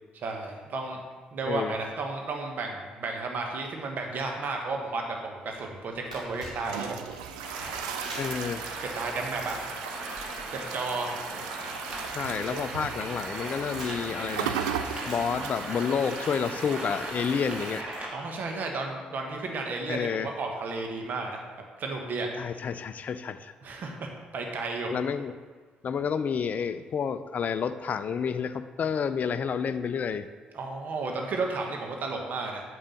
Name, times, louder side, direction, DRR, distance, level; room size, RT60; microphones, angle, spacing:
voice 1, 0.1-1.0 1.3-7.0 8.8-9.6 10.5-11.1 18.1-21.4 21.8-22.3 23.6-24.9 30.5-32.6, right 3 dB, 50° right, 2 dB, 1.3 m, -33 dB
sound 1, 5.4-18.0, right 1 dB, 90° right, 1.5 m, -48 dB
sound 2, 6.1-17.8, right 9 dB, 75° right, 0.4 m, -37 dB
sound 3, 7.4-18.1, right 1 dB, 30° right, 2.3 m, -38 dB
voice 2, 8.2-8.8 12.1-18.1 19.9-20.3 22.4-23.5 24.9-25.3 25.8-30.3, left 6 dB, 45° left, 12 dB, 0.4 m, -30 dB
8.8 x 3.8 x 6.4 m, 1.5 s
figure-of-eight pair, 45°, 4 cm